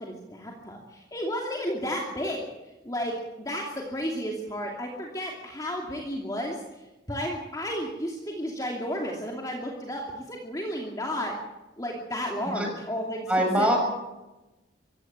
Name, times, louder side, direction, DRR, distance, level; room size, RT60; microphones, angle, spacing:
voice 1, 0.0-2.5 2.8-6.6 7.1-11.3 11.8-13.3 13.6-13.8, equal, 20° left, -1 dB, 2.7 m, -32 dB
voice 2, 13.3-13.8, right 1 dB, 5° right, 1 dB, 6.6 m, -23 dB
24.5 x 16.0 x 7.5 m, 1.0 s
head